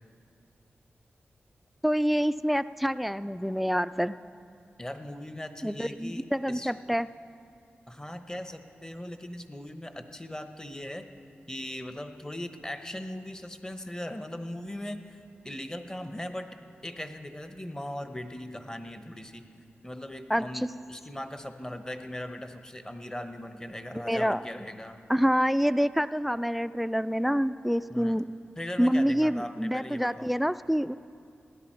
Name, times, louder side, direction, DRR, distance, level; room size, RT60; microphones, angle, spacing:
voice 1, 1.8-4.2 5.6-7.1 20.3-20.7 24.0-24.4 25.1-28.3 28.8-30.9, equal, ahead, 15 dB, 0.3 m, -27 dB
voice 2, 4.8-6.7 7.9-11.0 11.5-16.5 16.8-19.5 19.8-25.0 27.9-28.2 28.6-30.3, left 1 dB, 15° left, 8 dB, 0.9 m, -39 dB
17.5 x 11.0 x 4.5 m, 2.4 s
cardioid pair, 60°, 4 cm